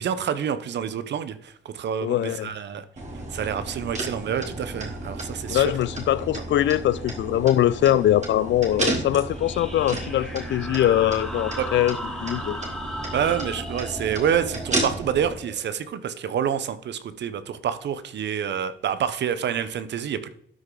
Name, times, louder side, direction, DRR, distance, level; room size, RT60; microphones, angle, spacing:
voice 1, 0.0-1.4 1.6-2.8 3.3-5.7 11.6-11.7 13.1-20.3, right 8 dB, 60° right, 0.9 m, -27 dB
voice 2, 2.0-2.5 5.5-12.6, left 12 dB, 65° left, 0.5 m, -22 dB
sound 1, 3.0-15.3, right 2 dB, 35° right, 2.6 m, -33 dB
sound 2, 9.3-16.5, equal, ahead, 2.1 m, -37 dB
12.5 x 6.6 x 3.9 m
cardioid pair, 90°, 20 cm